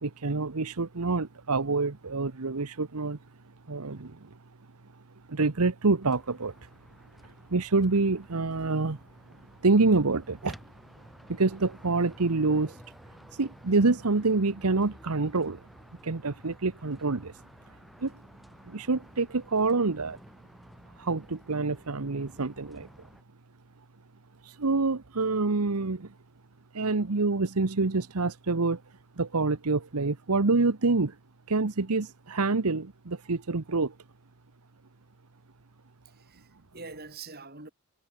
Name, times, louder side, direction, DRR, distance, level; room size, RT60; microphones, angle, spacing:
voice 1, 0.0-3.2 3.7-4.3 5.3-6.5 7.2-9.0 9.6-10.6 11.3-12.8 13.3-15.6 16.0-17.3 18.0-18.1 18.7-20.2 21.0-22.9 24.4-26.1 26.7-28.8 29.2-31.1 31.5-33.9, right 3 dB, 90° right, 1.1 m, -27 dB
sound 1, 6.0-23.2, equal, ahead, 4.2 m, -53 dB
voice 2, 36.0-37.7, right 4 dB, 45° right, 4.4 m, -45 dB
head